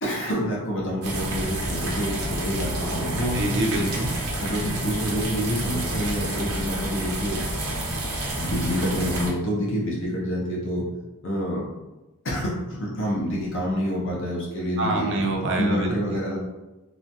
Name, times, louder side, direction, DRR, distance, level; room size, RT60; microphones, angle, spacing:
voice 1, 0.0-3.4 4.5-7.4 8.4-10.9 11.2-11.6 12.2-15.1 15.5-16.4, equal, 55° left, -4 dB, 0.6 m, -27 dB
sound 1, 1.0-9.3, right 1 dB, 90° right, 0.8 m, -29 dB
voice 2, 3.3-4.1 14.8-16.2, right 2 dB, 55° right, 0 dB, 0.5 m, -26 dB
2.9 x 2.1 x 2.6 m, 1.1 s
head